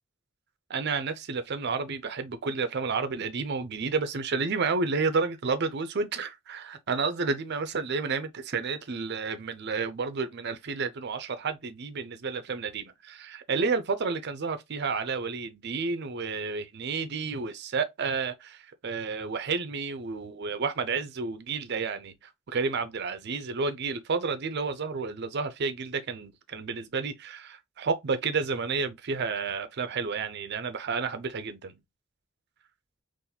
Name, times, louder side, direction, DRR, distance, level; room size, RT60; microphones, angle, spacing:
voice 1, 0.7-22.2 22.5-31.8, right 4 dB, 55° right, 0.6 m, -31 dB
4.0 x 2.5 x 2.7 m
head